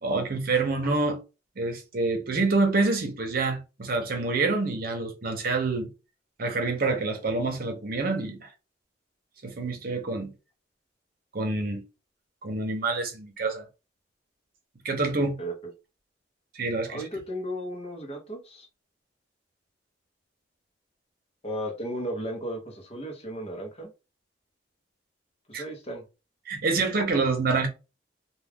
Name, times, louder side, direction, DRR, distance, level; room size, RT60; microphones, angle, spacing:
voice 1, 0.0-1.2 1.6-5.9 6.4-8.5 9.4-10.3 11.3-11.8 12.4-13.6 14.8-15.4 16.5-17.0 25.5-25.6 26.5-27.7, right 3 dB, 55° right, 0.7 m, -27 dB
voice 2, 16.9-18.7 21.4-23.9 25.5-26.0, equal, 35° left, 0.8 m, -35 dB
2.3 x 2.3 x 3.4 m
head